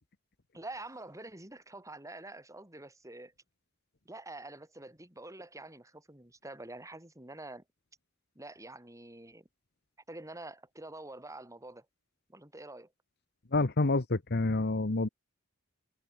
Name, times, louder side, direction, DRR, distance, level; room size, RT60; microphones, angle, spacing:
voice 1, 0.5-3.3 4.0-7.6 8.3-9.5 10.1-11.9 12.3-12.9, right 2 dB, 15° right, 6.3 m, -46 dB
voice 2, 13.5-15.1, left 2 dB, 50° left, 1.1 m, -28 dB
open air
head